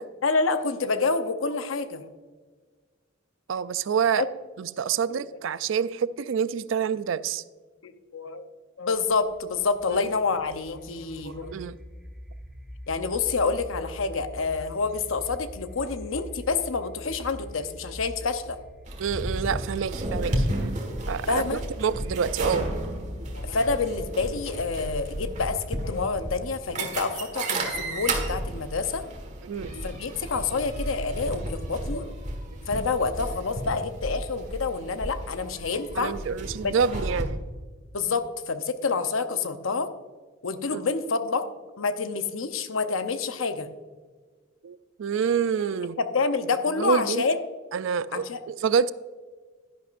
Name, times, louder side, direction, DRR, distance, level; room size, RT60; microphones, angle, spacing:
voice 1, 0.2-2.1 4.2-4.3 5.1-5.2 7.8-8.4 8.8-11.6 12.9-18.6 21.2-21.6 23.3-29.1 29.7-32.1 32.6-36.2 36.6-37.0 37.9-39.9 40.4-41.5 41.8-43.7 46.0-47.4 48.1-48.4, left 4 dB, 85° left, 10 dB, 0.8 m, -28 dB
voice 2, 3.5-4.2 4.6-7.4 11.2-11.8 19.0-20.7 21.1-22.6 29.4-29.7 32.5-32.6 36.0-37.4 40.7-40.8 44.6-46.0 46.8-47.2 47.7-48.9, right 7 dB, 70° right, 16 dB, 0.4 m, -27 dB
sound 1, 8.9-23.8, equal, 5° right, 1.2 m, -43 dB
sound 2, 18.9-37.2, right 1 dB, 35° right, 1.6 m, -33 dB
11.0 x 10.5 x 2.5 m, 1.5 s
head